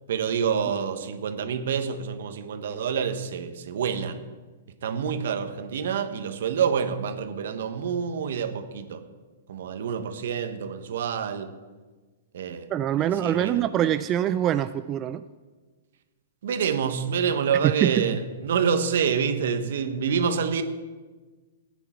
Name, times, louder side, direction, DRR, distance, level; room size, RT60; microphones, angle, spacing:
voice 1, 0.1-4.2 4.8-9.1 9.5-11.5 12.3-12.7 13.0-13.7 16.4-20.6, right 7 dB, 70° right, 9 dB, 1.2 m, -27 dB
voice 2, 12.7-15.2 17.6-18.1, right 11 dB, 30° right, 11 dB, 0.4 m, -24 dB
15.0 x 9.7 x 4.5 m, 1.3 s
hypercardioid pair, 130°, 0 cm